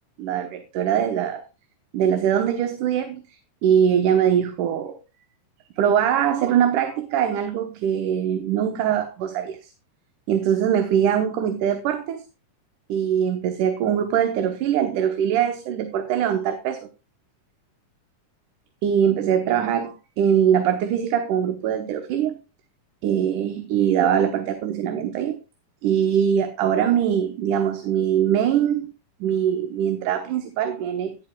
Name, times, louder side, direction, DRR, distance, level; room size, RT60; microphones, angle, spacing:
voice 1, 0.2-1.4 1.9-3.2 3.6-5.0 5.8-9.7 10.3-12.2 12.9-16.8 18.8-22.4 23.0-25.4 25.8-28.9 29.2-31.2, right 9 dB, 75° right, 7 dB, 2.5 m, -22 dB
12.0 x 11.0 x 2.2 m, 0.29 s
omnidirectional pair, 3.7 m